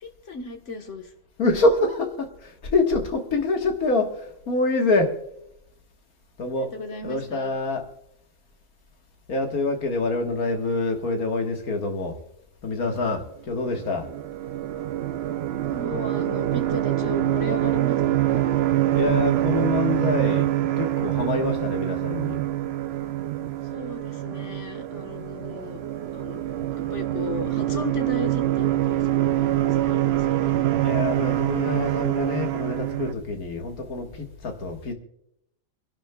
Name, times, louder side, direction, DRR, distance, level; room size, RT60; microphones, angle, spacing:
voice 1, 0.0-1.1 6.5-7.6 15.7-18.6 23.7-25.8 26.1-26.4 26.9-29.5 29.8-30.5, left 3 dB, 55° left, 5 dB, 1.6 m, -36 dB
voice 2, 1.4-5.1 6.4-6.7 7.0-7.8 9.3-12.2 12.6-14.0 18.9-20.5 20.8-22.4 30.8-34.9, left 2 dB, 80° left, 3 dB, 2.0 m, -26 dB
sound 1, 13.7-33.1, right 13 dB, 60° right, 0.7 m, -25 dB
27.0 x 11.5 x 2.3 m, 0.78 s
omnidirectional pair, 1.5 m